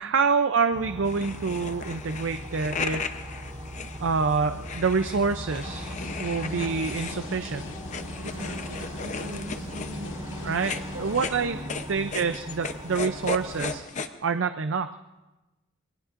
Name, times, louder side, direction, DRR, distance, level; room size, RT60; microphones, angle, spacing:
voice 1, 0.0-3.0 4.0-7.6 10.4-11.6 11.9-13.8 14.2-14.9, right 5 dB, 70° right, 9 dB, 0.5 m, -26 dB
sound 1, 0.7-13.8, equal, 25° right, 2.6 m, -39 dB
sound 2, 1.0-14.1, left 4 dB, 35° left, 0.7 m, -37 dB
street raining, 5.6-11.3, left 1 dB, 75° left, 1.7 m, -40 dB
voice 2, 8.2-10.2 10.9-11.1 11.4-11.7, equal, 85° right, -2 dB, 5.7 m, -41 dB
26.0 x 21.0 x 2.5 m, 1.1 s
head